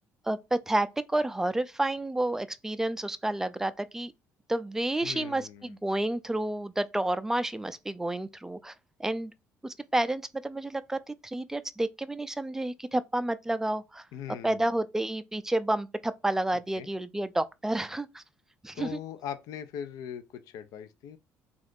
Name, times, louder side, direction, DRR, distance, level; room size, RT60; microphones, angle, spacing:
voice 1, 0.2-4.1 4.5-8.7 9.0-9.3 9.6-14.1 14.4-18.2 18.6-19.0, right 1 dB, 5° right, 0.3 m, -30 dB
voice 2, 5.0-5.7 14.1-14.7 16.7-16.9 18.7-21.2, left 9 dB, 75° left, 0.4 m, -40 dB
2.6 x 2.4 x 3.5 m
supercardioid pair, 90°, 6 cm